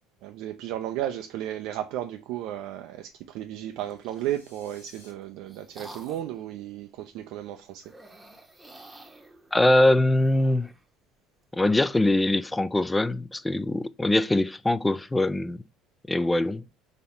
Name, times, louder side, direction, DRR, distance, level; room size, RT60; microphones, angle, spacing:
voice 1, 0.2-7.9, right 12 dB, 65° right, 0.4 m, -34 dB
sound 1, 3.7-4.3 5.0-6.4 7.8-10.8, right 1 dB, 10° right, 1.0 m, -50 dB
sound 2, 3.9-5.1, left 2 dB, 85° left, 1.2 m, -56 dB
voice 2, 9.5-10.7 11.5-15.6 16.1-16.6, left 1 dB, 10° left, 0.4 m, -22 dB
3.9 x 2.8 x 4.2 m
hypercardioid pair, 60°, 0 cm